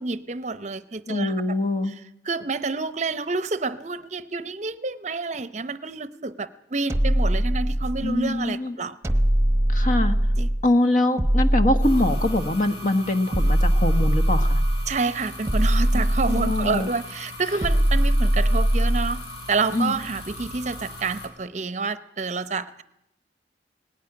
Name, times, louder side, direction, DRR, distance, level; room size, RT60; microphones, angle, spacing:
voice 1, 0.0-1.6 1.8-1.9 2.2-9.0 10.4-10.5 14.9-19.2 19.5-22.8, right 4 dB, 40° right, 14 dB, 0.7 m, -28 dB
voice 2, 1.1-1.9 8.0-8.8 9.7-10.1 10.6-14.6 15.9-16.0 16.3-16.9 19.7-19.9, left 1 dB, 45° left, 9 dB, 1.3 m, -23 dB
sound 1, 6.9-8.2 9.0-10.7 11.2-12.6 13.3-14.9 15.5-16.9 17.6-19.2, right 1 dB, 15° right, 1.0 m, -21 dB
sound 2, 11.8-21.3, left 1 dB, 80° left, 4.9 m, -39 dB
18.5 x 17.5 x 9.7 m, 0.83 s
head